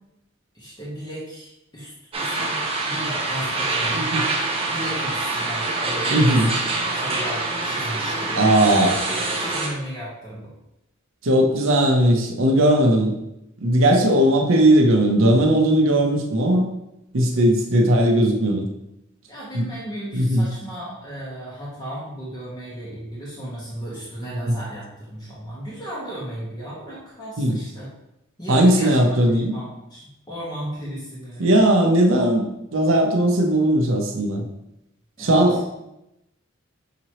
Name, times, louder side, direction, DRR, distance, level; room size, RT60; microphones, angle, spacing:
voice 1, 0.5-4.2 4.7-8.4 9.1-10.5 19.3-27.9 28.4-31.5 35.2-35.4, right 1 dB, 20° left, -8 dB, 1.0 m, -35 dB
sound 1, 2.1-9.7, right 2 dB, 30° right, 0.7 m, -25 dB
voice 2, 6.1-6.5 8.3-9.0 11.2-13.1 13.6-16.7 17.1-18.7 19.5-19.7 20.1-20.5 24.5-24.6 27.4-27.6 28.5-29.5 31.4-32.5 32.7-34.4 35.2-35.8, right 1 dB, 70° right, 1 dB, 0.7 m, -18 dB
5.9 x 2.9 x 2.9 m, 0.87 s
head